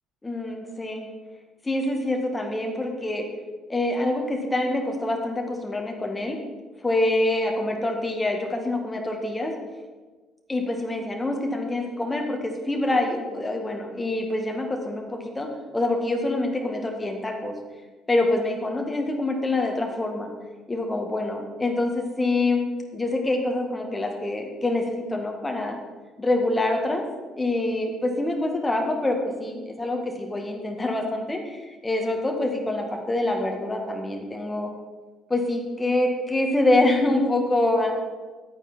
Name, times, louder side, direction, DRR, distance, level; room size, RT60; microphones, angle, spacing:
voice 1, 0.2-1.1 1.6-3.2 3.7-6.4 6.8-9.5 10.5-15.5 15.7-17.5 18.1-20.3 20.7-22.6 22.9-25.8 26.2-27.0 27.4-34.7 35.3-38.0, left 2 dB, 15° left, 2 dB, 1.7 m, -25 dB
10.0 x 9.0 x 4.4 m, 1.3 s
figure-of-eight pair, 50°, 0 cm